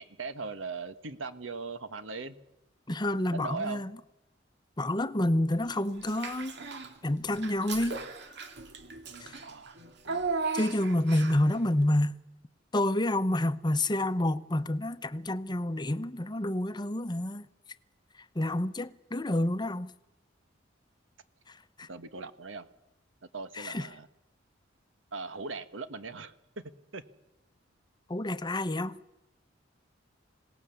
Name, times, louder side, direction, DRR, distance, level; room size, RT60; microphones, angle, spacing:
voice 1, 0.0-2.4 3.3-3.8 9.4-9.8 21.9-22.7 23.3-24.1 25.1-26.3 26.9-27.0, right 4 dB, 80° right, 1.4 m, -39 dB
voice 2, 2.9-3.9 4.8-6.6 7.0-8.0 9.2-9.4 10.5-12.1 12.7-17.5 18.3-19.9 21.5-21.9 23.5-23.9 28.1-29.0, left 1 dB, 25° left, 0.8 m, -29 dB
Child speech kid speaking / Bathtub (filling or washing), 6.0-6.9 7.3-11.5, right 4 dB, 65° right, 2.2 m, -36 dB
27.0 x 18.0 x 7.1 m
head